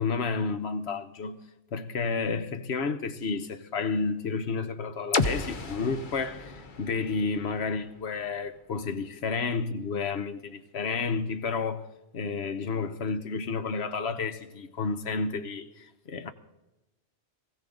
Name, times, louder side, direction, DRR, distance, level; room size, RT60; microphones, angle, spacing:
voice 1, 0.0-1.4 1.7-11.9 12.1-16.3, left 4 dB, 70° left, 1.2 m, -31 dB
sound 1, 5.1-9.0, left 3 dB, 50° left, 1.1 m, -33 dB
20.5 x 15.5 x 3.9 m
omnidirectional pair, 1.2 m